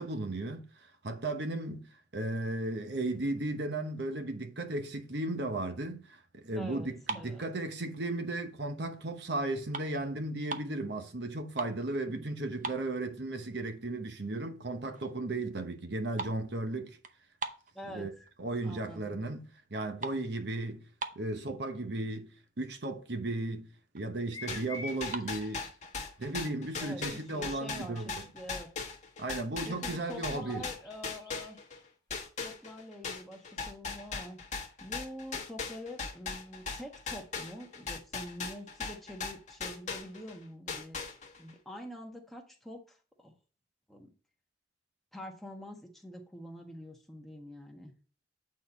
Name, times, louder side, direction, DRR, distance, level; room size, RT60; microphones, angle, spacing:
voice 1, 0.0-1.8 2.1-17.0 17.9-18.1 18.4-20.8 21.1-22.3 22.6-23.7 23.9-25.7 26.2-28.2 29.2-30.6, right 2 dB, 70° right, 1.1 m, -35 dB
voice 2, 6.5-7.5 12.0-12.4 17.7-18.1 18.6-19.2 26.8-28.7 29.7-31.6 32.4-34.4 34.8-41.0 41.4-43.4 43.9-44.1 45.1-47.9, equal, ahead, 1.2 m, -46 dB
sound 1, 6.9-8.3 8.8-9.0 9.4-10.8 11.3-11.9 12.2-12.3 12.6-13.5 13.9-14.0 14.6-14.7 14.9-15.3 15.5-18.3 18.8-19.2 19.5-21.5 22.2-22.3 22.5-22.7 23.1-23.2 23.4-24.1 24.9-25.3, right 3 dB, 45° right, 0.7 m, -42 dB
sound 2, 24.3-25.7 29.2-31.8, left 3 dB, 20° left, 1.1 m, -47 dB
sound 3, 24.5-31.8 32.1-40.4 40.7-41.5, left 4 dB, 40° left, 1.3 m, -39 dB
8.4 x 4.3 x 4.2 m
head